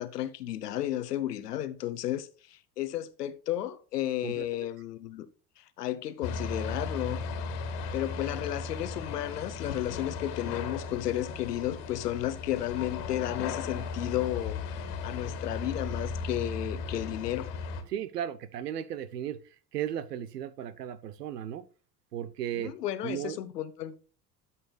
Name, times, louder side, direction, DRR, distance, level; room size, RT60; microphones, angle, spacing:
voice 1, 0.0-5.3 5.6-7.2 7.9-17.5 22.5-23.9, left 13 dB, 80° left, 0.9 m, -33 dB
sound 1, 6.2-17.8, left 4 dB, 60° left, 1.8 m, -36 dB
voice 2, 17.9-19.4 19.7-21.7 22.1-22.7 23.0-23.4, right 10 dB, 80° right, 0.8 m, -35 dB
13.5 x 5.5 x 2.2 m
figure-of-eight pair, 70°, 47 cm